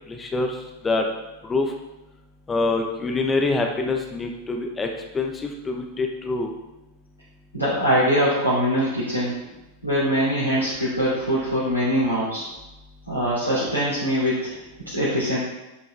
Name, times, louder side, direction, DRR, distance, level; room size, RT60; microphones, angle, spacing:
voice 1, 0.1-0.5 0.8-1.0 1.4-1.7 2.5-4.9 5.1-6.5, left 3 dB, 15° left, 2 dB, 1.1 m, -25 dB
voice 2, 7.5-9.3 9.8-12.4 13.1-14.5 14.9-15.4, equal, 90° left, -10 dB, 2.6 m, -22 dB
9.7 x 5.2 x 3.5 m, 0.98 s
figure-of-eight pair, 90°, 0 cm